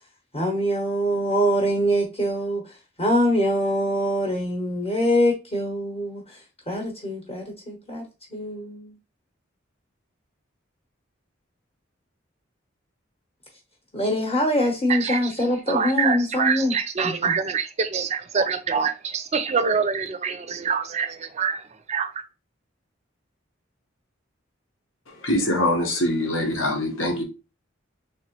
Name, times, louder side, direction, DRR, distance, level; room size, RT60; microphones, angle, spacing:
voice 1, 0.3-2.6 3.0-6.4 6.7-8.0 8.3-8.9 13.9-16.7 17.0-17.3, equal, 30° left, 0.8 m, -24 dB
voice 2, 15.7-21.6 21.9-22.2, right 6 dB, 35° right, 0.4 m, -25 dB
voice 3, 25.2-27.2, left 1 dB, 85° left, 1.0 m, -23 dB
3.5 x 2.9 x 2.9 m
head